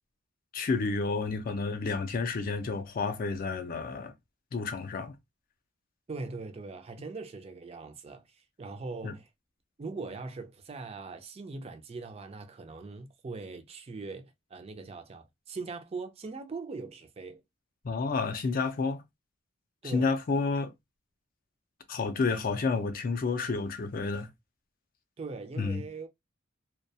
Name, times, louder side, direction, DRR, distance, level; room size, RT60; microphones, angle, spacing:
voice 1, 0.5-4.1 4.5-5.1 9.0-9.1 17.8-19.0 19.8-20.7 21.9-24.3 25.6-25.8, left 4 dB, 45° left, 0.4 m, -30 dB
voice 2, 6.1-9.3 9.8-17.4 19.8-20.2 25.2-26.1, right 3 dB, 30° right, 0.3 m, -41 dB
2.3 x 2.1 x 2.6 m
head